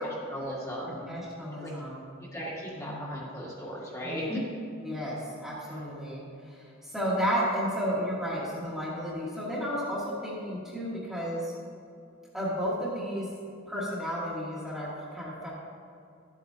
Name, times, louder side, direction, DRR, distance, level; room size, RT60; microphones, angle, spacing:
voice 1, 0.0-1.1 1.6-1.7 2.2-4.5 5.7-5.8, equal, 15° left, -6 dB, 1.7 m, -37 dB
voice 2, 1.1-2.1 2.8-3.1 4.0-4.3 4.8-6.2 6.5-11.5 12.3-13.3 13.7-15.5, equal, ahead, -9 dB, 1.6 m, -32 dB
12.5 x 8.3 x 2.8 m, 2.6 s
head